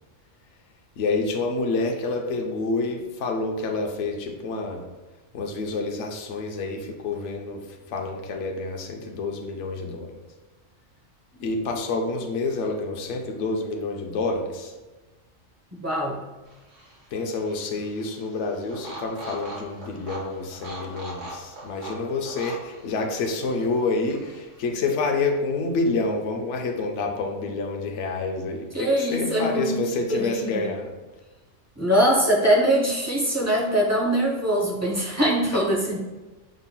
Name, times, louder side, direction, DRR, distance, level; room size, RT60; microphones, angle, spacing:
voice 1, 1.0-4.8 5.3-10.2 11.4-14.7 17.1-30.9 35.5-35.6, left 3 dB, 75° left, 2 dB, 0.9 m, -28 dB
voice 2, 15.8-16.2 28.7-29.8 30.1-30.7 31.8-36.0, right 1 dB, 20° right, -3 dB, 0.5 m, -22 dB
sound 1, 16.5-24.6, right 1 dB, 80° right, 1.6 m, -42 dB
5.4 x 3.7 x 2.2 m, 1.2 s
omnidirectional pair, 1.3 m